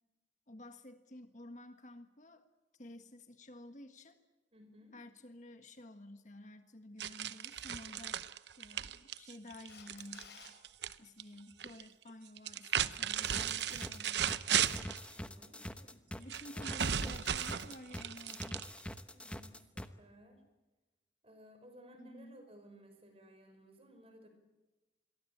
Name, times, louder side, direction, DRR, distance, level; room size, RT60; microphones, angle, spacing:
voice 1, 0.5-2.5 2.7-4.2 4.9-8.2 8.6-10.3 11.0-14.7 15.8-18.7 22.0-22.4, left 1 dB, 40° left, 8 dB, 1.5 m, -52 dB
voice 2, 4.5-4.9 15.1-15.6 19.1-20.4 21.2-24.3, equal, 30° right, 6 dB, 5.6 m, -58 dB
sound 1, 7.0-10.9 11.2-11.8 12.4-15.1 16.3-19.0, right 9 dB, 65° right, 0.8 m, -35 dB
Camera, 9.7-10.5 17.2-17.3, left 6 dB, 65° left, 5.9 m, -54 dB
sound 2, 13.2-19.9, left 1 dB, 5° left, 1.0 m, -44 dB
27.0 x 22.5 x 8.6 m, 1.1 s
head